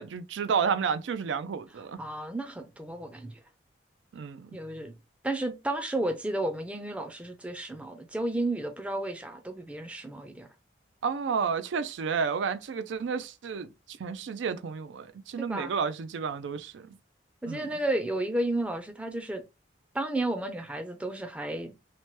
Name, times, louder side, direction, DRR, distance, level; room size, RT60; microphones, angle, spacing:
voice 1, 0.0-2.0 4.1-4.6 11.0-16.9 17.5-17.7, right 6 dB, 80° right, 0.4 m, -31 dB
voice 2, 2.0-3.3 4.5-4.9 5.2-10.5 15.4-15.7 17.4-19.4 19.9-21.7, right 1 dB, 5° right, 0.4 m, -32 dB
2.9 x 2.1 x 3.0 m
head